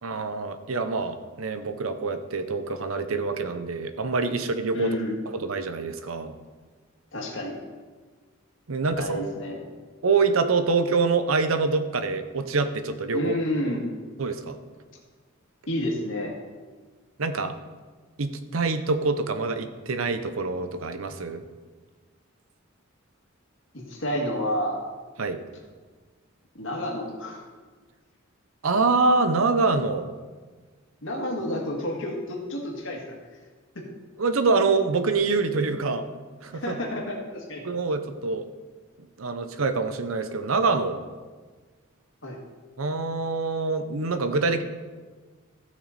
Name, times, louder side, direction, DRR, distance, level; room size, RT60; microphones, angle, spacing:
voice 1, 0.0-5.0 5.3-6.3 8.7-9.2 10.0-13.3 14.2-14.6 17.2-17.5 18.2-21.4 25.2-25.4 28.6-30.1 34.2-36.1 36.4-36.7 37.6-38.4 39.2-41.0 42.8-44.6, right 4 dB, 85° right, 9 dB, 0.8 m, -25 dB
voice 2, 4.7-5.2 7.1-7.6 9.0-9.7 13.1-13.9 15.7-16.4 23.7-24.8 26.5-27.4 31.0-33.2 33.8-33.9 36.5-37.6 42.2-42.4, equal, 65° left, 0 dB, 2.0 m, -30 dB
15.0 x 6.2 x 4.1 m, 1.4 s
head